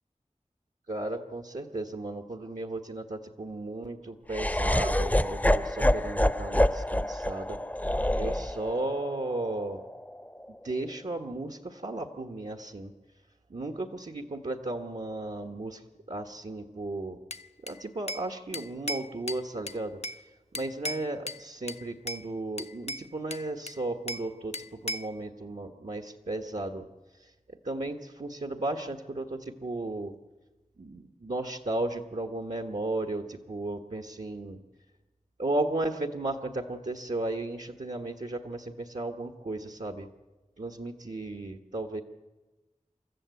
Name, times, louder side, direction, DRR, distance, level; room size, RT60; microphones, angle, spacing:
voice 1, 0.9-7.6 8.2-9.8 10.6-12.9 13.5-17.2 17.6-20.2 20.5-26.9 27.1-30.1 30.8-34.6 35.4-40.1 40.6-42.0, right 2 dB, 65° right, 4 dB, 1.4 m, -35 dB
Laughter, 4.3-10.4, left 1 dB, 10° left, 0.7 m, -27 dB
Bell / Glass, 17.3-18.3 18.5-20.2 20.5-21.4 21.7-22.2 22.6-24.3 24.5-25.2, left 1 dB, 50° left, 0.7 m, -37 dB
28.5 x 14.0 x 8.3 m, 1.1 s
wide cardioid pair, 45°, 13 cm